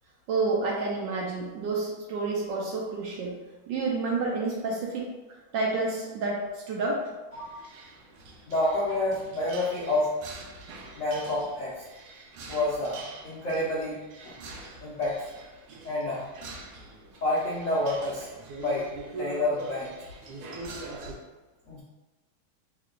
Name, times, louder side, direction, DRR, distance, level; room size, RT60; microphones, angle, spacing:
voice 1, 0.3-3.4 3.7-5.1 5.5-7.1, right 3 dB, 70° right, -2 dB, 1.2 m, -29 dB
sound 1, 7.3-21.1, right 2 dB, 85° right, 1.5 m, -44 dB
voice 2, 8.5-10.1 11.0-11.8 12.5-14.4 14.8-15.2 15.8-16.3 17.2-18.3 18.6-18.8 19.2-19.9 21.7-21.8, left 1 dB, 70° left, -7 dB, 0.7 m, -28 dB
3.6 x 2.2 x 3.7 m, 1.1 s
omnidirectional pair, 2.3 m